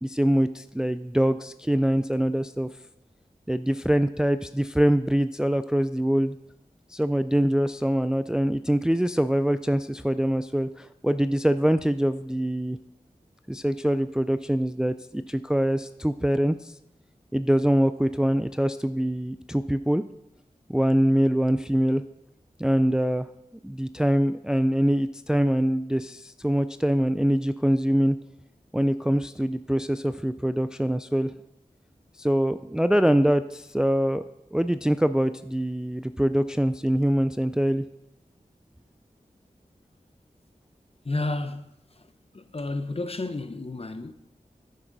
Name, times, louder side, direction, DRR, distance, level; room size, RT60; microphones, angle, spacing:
voice 1, 0.0-2.7 3.5-6.4 6.9-12.8 13.5-16.7 17.3-20.0 20.7-22.0 22.6-23.3 23.6-28.2 28.7-31.3 32.2-34.2 34.5-37.9, equal, 5° right, 0.3 m, -24 dB
voice 2, 41.0-41.7 41.9-42.1 42.3-44.1, left 2 dB, 40° left, 0.8 m, -31 dB
11.0 x 9.8 x 4.0 m
wide cardioid pair, 50°, 15 cm